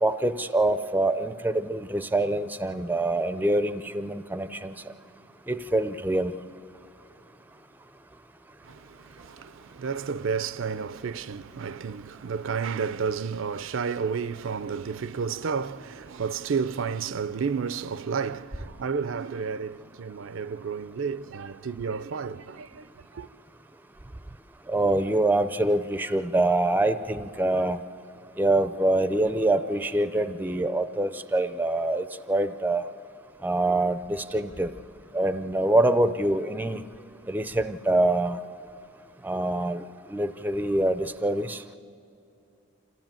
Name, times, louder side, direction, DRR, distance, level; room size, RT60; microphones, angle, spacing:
voice 1, 0.0-4.8 5.5-6.3 24.7-27.8 28.4-32.8 33.4-34.7 35.1-36.8 37.3-38.4 39.2-39.8 40.1-41.6, right 1 dB, 10° right, 0.4 m, -25 dB
voice 2, 8.6-23.3, right 6 dB, 65° right, 0.4 m, -31 dB
26.0 x 14.5 x 9.0 m
head